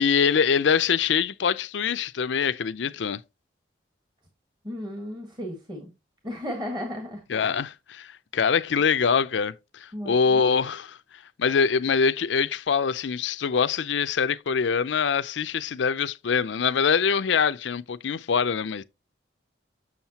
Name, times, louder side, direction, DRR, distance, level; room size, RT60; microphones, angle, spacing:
voice 1, 0.0-3.2 7.3-11.0 11.4-18.8, left 6 dB, 75° left, 0.5 m, -24 dB
voice 2, 4.6-5.9 6.2-7.2 9.9-10.4, equal, 25° right, 1.5 m, -34 dB
7.2 x 6.4 x 2.9 m
head